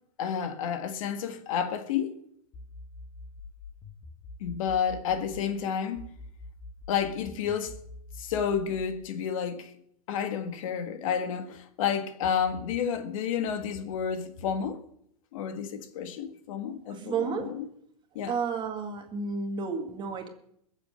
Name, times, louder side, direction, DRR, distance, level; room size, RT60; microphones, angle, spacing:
voice 1, 0.2-2.2 4.4-6.1 6.9-7.8 8.2-9.7 10.1-14.8 15.3-17.7 18.2-18.4, left 7 dB, 60° left, 1.8 m, -30 dB
sound 1, 2.5-5.5 6.0-9.0, left 3 dB, 25° left, 1.5 m, -45 dB
voice 2, 16.9-17.5 18.3-20.3, right 5 dB, 25° right, 1.9 m, -32 dB
21.0 x 7.3 x 6.5 m
hypercardioid pair, 125°, 20 cm